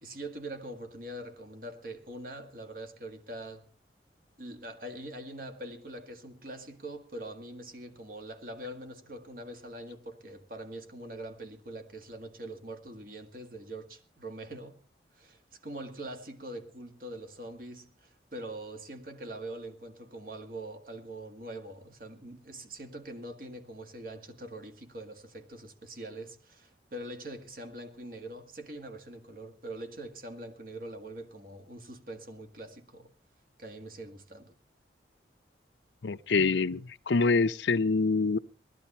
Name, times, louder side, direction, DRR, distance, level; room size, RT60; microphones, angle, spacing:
voice 1, 0.0-3.7 4.4-14.8 15.1-33.1 33.6-34.6, right 1 dB, 50° right, 1.9 m, -43 dB
voice 2, 36.0-38.4, left 4 dB, 85° left, 0.6 m, -26 dB
19.0 x 13.0 x 4.3 m
head